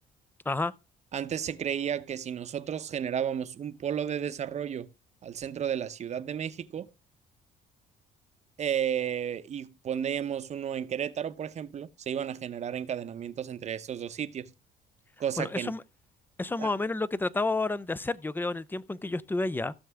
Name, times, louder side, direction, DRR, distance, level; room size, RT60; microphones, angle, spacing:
voice 1, 1.1-4.9 5.2-6.9 8.6-14.5 15.2-15.7 16.6-16.7, right 9 dB, 40° right, 0.8 m, -33 dB
voice 2, 15.4-15.8 16.4-19.7, left 2 dB, 10° left, 0.5 m, -30 dB
15.5 x 6.7 x 3.5 m
cardioid pair, 110°, 17 cm